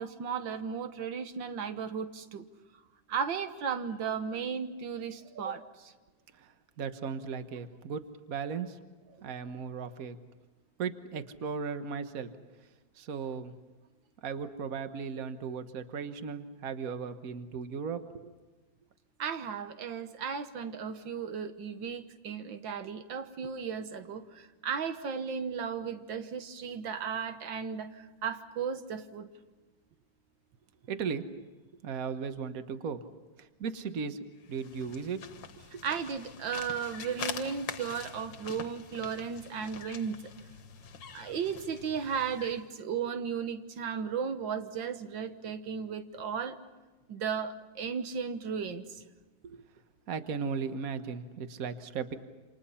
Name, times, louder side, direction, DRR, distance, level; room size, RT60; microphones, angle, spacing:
voice 1, 0.0-2.5 3.1-5.9 19.2-29.3 35.8-40.2 41.1-46.6 47.1-49.0, right 6 dB, 85° right, 9 dB, 1.9 m, -35 dB
voice 2, 6.8-8.0 8.3-8.8 9.2-10.2 10.8-12.3 13.0-13.5 14.2-18.3 30.9-31.5 31.8-33.0 33.4-34.2 34.5-35.2 49.4-49.6 50.1-52.2, right 6 dB, 50° right, 9 dB, 1.6 m, -36 dB
sound 1, 34.4-42.7, left 6 dB, 75° left, 2.0 m, -44 dB
28.5 x 27.5 x 5.7 m, 1.2 s
omnidirectional pair, 2.0 m